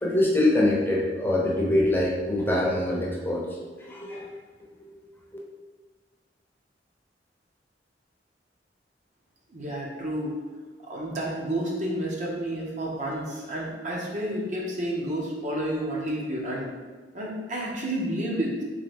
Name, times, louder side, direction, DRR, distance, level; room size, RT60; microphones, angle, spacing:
voice 1, 0.0-3.4 3.8-4.3 4.8-4.9, left 1 dB, 10° left, -4 dB, 0.7 m, -24 dB
voice 2, 9.5-10.3 10.8-16.7 17.1-18.6, right 1 dB, 45° right, -3 dB, 0.8 m, -30 dB
3.8 x 3.3 x 3.5 m, 1.4 s
head